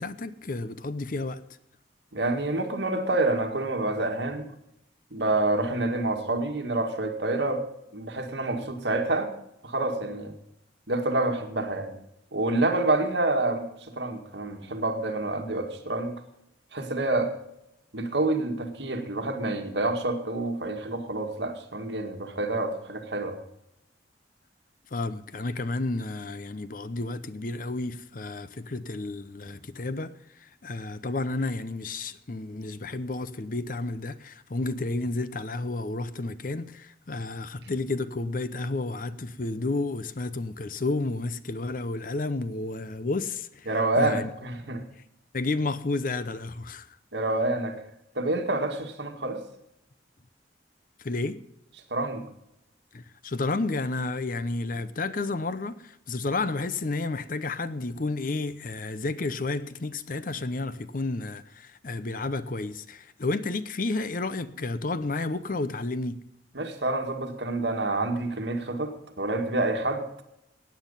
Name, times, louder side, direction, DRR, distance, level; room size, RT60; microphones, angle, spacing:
voice 1, 0.0-1.4 24.9-43.7 44.0-44.3 44.7-44.8 45.3-47.0 51.0-51.4 52.9-66.2, left 2 dB, 50° left, 0.7 m, -31 dB
voice 2, 2.1-4.5 5.1-7.6 7.9-9.3 9.6-10.3 10.9-11.9 12.3-13.6 13.9-16.2 16.7-17.3 17.9-23.4 43.7-44.8 47.1-47.8 48.2-49.4 51.9-52.2 66.6-70.0, right 2 dB, 70° right, 1.9 m, -27 dB
16.5 x 9.5 x 5.5 m
head